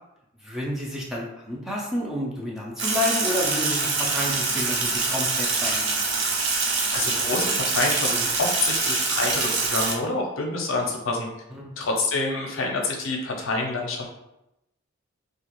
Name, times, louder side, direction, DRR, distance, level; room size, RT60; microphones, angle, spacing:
voice 1, 0.4-6.0 11.5-11.7, left 1 dB, ahead, -4 dB, 0.5 m, -30 dB
Sink (filling or washing), 2.8-9.9, right 4 dB, 60° right, 0.5 m, -25 dB
voice 2, 6.9-11.3 11.8-14.0, left 2 dB, 80° left, 0 dB, 0.6 m, -27 dB
2.4 x 2.3 x 2.9 m, 0.86 s
head